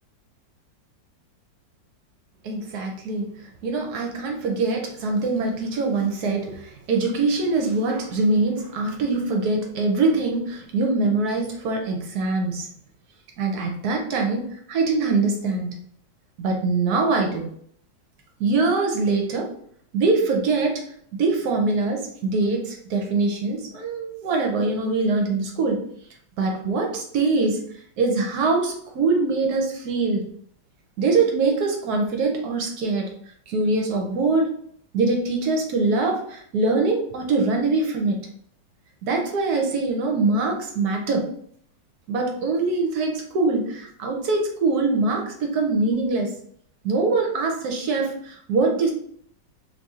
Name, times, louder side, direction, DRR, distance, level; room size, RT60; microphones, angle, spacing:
voice 1, 2.4-3.3 3.6-12.7 13.4-15.8 16.4-17.5 18.4-19.5 19.9-20.8 21.2-25.8 26.4-27.6 28.0-30.2 31.0-33.1 33.5-34.5 34.9-38.2 39.0-41.3 42.1-46.3 46.8-48.9, right 3 dB, 65° right, 2 dB, 1.1 m, -23 dB
3.2 x 2.7 x 3.6 m, 0.64 s
omnidirectional pair, 1.9 m